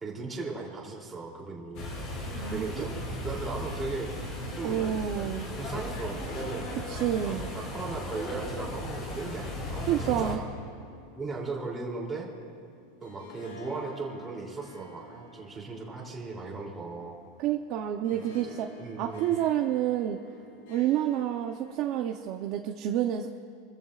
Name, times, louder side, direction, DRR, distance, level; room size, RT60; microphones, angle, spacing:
voice 1, 0.0-1.9 2.5-4.1 4.5-4.8 5.6-6.7 7.2-10.4 11.1-12.3 13.0-17.2 18.1-18.2 18.8-19.3, right 3 dB, 10° right, -3 dB, 2.9 m, -37 dB
sound 1, 1.7-10.4, left 1 dB, 40° left, 4.0 m, -36 dB
voice 2, 2.3-2.9 4.6-5.5 6.9-7.5 9.9-10.4 17.4-18.7 19.0-20.2 20.7-23.3, right 11 dB, 40° right, 3 dB, 0.7 m, -29 dB
Harp, 3.1-22.7, left 1 dB, 75° left, 2.9 m, -50 dB
28.5 x 14.5 x 2.5 m, 2.5 s
supercardioid pair, 160°, 0 cm